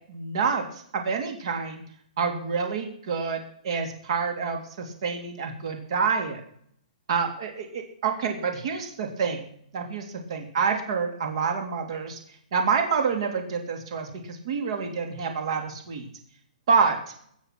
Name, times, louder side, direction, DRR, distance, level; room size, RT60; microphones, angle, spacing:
voice 1, 0.1-0.6 0.9-1.8 2.2-6.4 7.1-9.4 9.7-10.0 10.3-12.2 12.5-16.1 16.7-17.0, right 5 dB, 40° right, 5 dB, 3.1 m, -27 dB
21.0 x 8.3 x 6.0 m, 0.64 s
hypercardioid pair, 175°, 5 cm